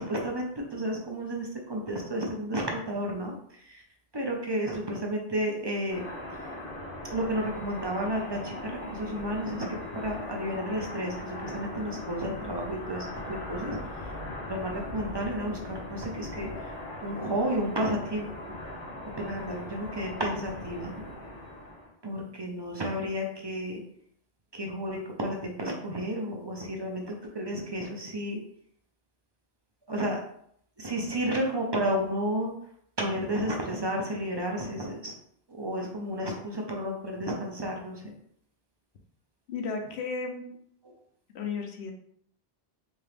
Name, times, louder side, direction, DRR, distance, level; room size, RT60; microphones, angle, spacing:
voice 1, 0.0-3.4 3.7-3.8 4.1-6.0 7.1-13.8 14.4-16.5 17.0-18.3 19.2-21.1 22.0-23.8 24.5-28.4 29.9-30.2 30.8-32.5 33.0-35.1 35.5-38.1, equal, 30° right, 0 dB, 0.6 m, -32 dB
sound 1, 5.9-21.9, left 1 dB, 60° left, 1.1 m, -40 dB
voice 2, 39.5-40.5 41.3-41.9, left 4 dB, 90° left, 4 dB, 1.0 m, -34 dB
3.5 x 2.8 x 3.3 m, 0.67 s
omnidirectional pair, 1.1 m